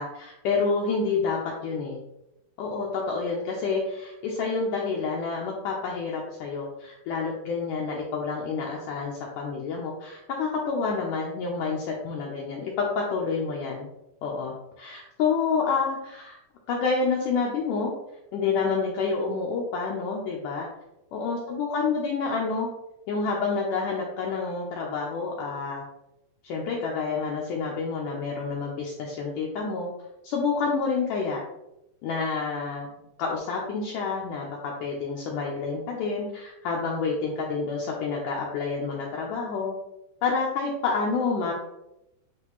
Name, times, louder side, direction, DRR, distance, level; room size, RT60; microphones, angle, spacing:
voice 1, 0.0-2.0 2.6-13.9 14.2-16.4 16.7-17.9 18.3-20.7 21.1-22.7 23.1-25.8 26.4-29.9 30.2-31.4 32.0-32.9 33.2-39.8 40.2-41.5, left 4 dB, 75° left, -2 dB, 2.0 m, -28 dB
9.7 x 3.2 x 3.0 m, 0.90 s
omnidirectional pair, 4.4 m